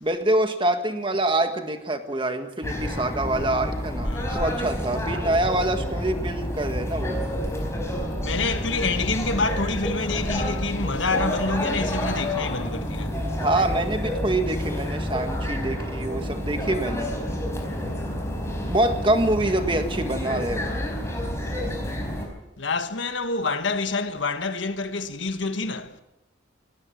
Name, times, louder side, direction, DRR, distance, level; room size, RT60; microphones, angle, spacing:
voice 1, 0.0-7.3 13.4-17.1 18.7-20.7, right 1 dB, 25° right, 1.7 m, -25 dB
sound 1, 2.6-22.3, equal, 15° left, 4.7 m, -29 dB
voice 2, 4.0-4.4 7.6-7.9 8.2-13.2 17.8-18.2 21.0-21.4 22.6-26.0, left 3 dB, 80° left, 1.5 m, -28 dB
19.0 x 18.0 x 7.6 m
head